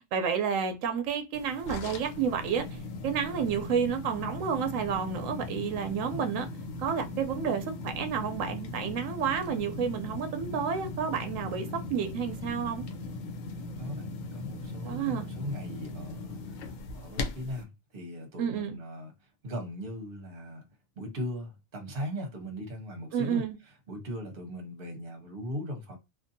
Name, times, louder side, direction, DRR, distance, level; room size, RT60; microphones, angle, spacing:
voice 1, 0.0-6.5 6.8-12.9 14.8-15.3 18.4-18.8 23.1-23.6, right 7 dB, 90° right, 1.0 m, -30 dB
sound 1, 1.3-17.6, left 2 dB, 85° left, 1.0 m, -39 dB
voice 2, 14.3-16.6 16.9-19.1 19.4-20.6 21.0-23.4 23.9-26.0, equal, 50° right, 1.0 m, -38 dB
2.6 x 2.5 x 2.6 m
omnidirectional pair, 1.3 m